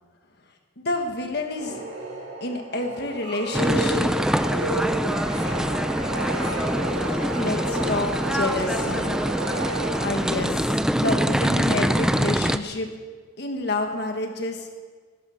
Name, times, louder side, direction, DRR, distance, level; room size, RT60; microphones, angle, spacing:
voice 1, 0.8-1.8 2.4-4.1 7.3-9.1 10.0-12.9 13.4-14.7, left 2 dB, 60° left, 4 dB, 1.5 m, -29 dB
sound 1, 1.5-10.6, right 1 dB, 65° right, 6.0 m, -32 dB
sound 2, 3.5-12.6, equal, 5° right, 0.5 m, -24 dB
17.5 x 12.5 x 6.4 m, 1.5 s
head